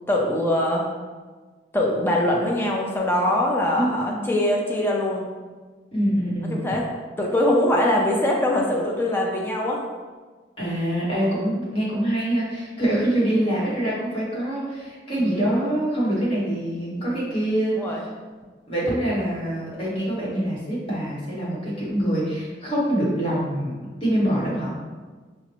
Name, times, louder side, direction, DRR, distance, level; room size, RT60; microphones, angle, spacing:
voice 1, 0.1-0.9 1.7-5.3 6.5-6.9 7.2-9.8 15.2-15.4 17.7-18.0, left 1 dB, 15° left, -1 dB, 0.5 m, -22 dB
voice 2, 3.7-4.2 5.9-6.8 10.6-17.7 18.7-24.7, right 1 dB, 30° left, -8 dB, 1.1 m, -25 dB
4.7 x 2.0 x 2.9 m, 1.4 s
head